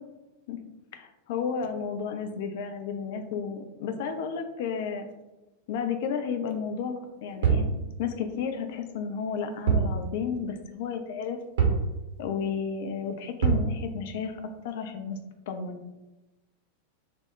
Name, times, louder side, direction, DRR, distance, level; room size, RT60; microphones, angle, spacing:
voice 1, 0.9-5.1 5.7-7.7 8.0-11.4 12.2-14.4 14.6-15.2 15.5-15.8, left 6 dB, 50° left, 6 dB, 0.3 m, -32 dB
sound 1, 7.4-7.7 9.7-9.9 10.3-10.4 11.6-11.9 13.4-13.7, right 6 dB, 60° right, 0.7 m, -23 dB
2.1 x 2.0 x 3.6 m, 1.1 s
figure-of-eight pair, 90°, 0 cm